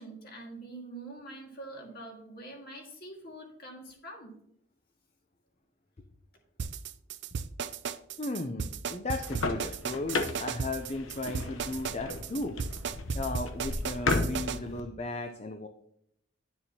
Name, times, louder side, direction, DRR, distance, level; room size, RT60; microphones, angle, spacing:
voice 1, 0.0-4.3, right 2 dB, 45° left, 0 dB, 2.0 m, -45 dB
sound 1, 6.6-14.6, right 6 dB, 55° right, 0.4 m, -35 dB
voice 2, 8.2-12.6 13.1-15.7, left 2 dB, 30° left, 6 dB, 0.5 m, -35 dB
sound 2, 9.1-14.8, left 3 dB, 80° left, 0.9 m, -34 dB
10.5 x 7.0 x 2.8 m, 0.73 s
head